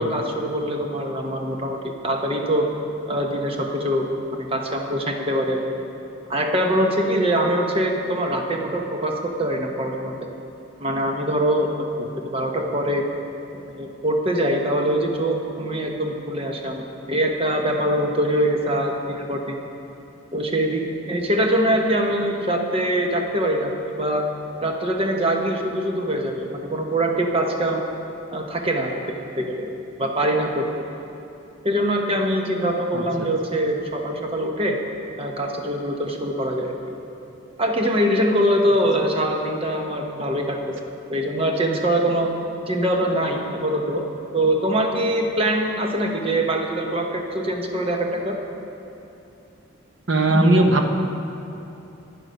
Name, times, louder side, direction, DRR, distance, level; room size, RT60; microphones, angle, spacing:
voice 1, 0.0-2.7 3.1-5.6 6.3-10.2 10.8-11.9 12.2-13.1 13.5-19.6 20.3-20.8 21.1-24.3 24.6-27.9 28.3-29.7 30.0-30.7 31.6-34.8 35.2-36.7 37.6-40.8 41.1-42.3 42.7-44.0 44.3-48.4 50.3-50.5, right 1 dB, 25° right, 2 dB, 0.9 m, -23 dB
voice 2, 32.9-33.3 50.1-50.9, right 1 dB, 60° right, 4 dB, 0.9 m, -19 dB
11.0 x 9.5 x 5.2 m, 2.9 s
head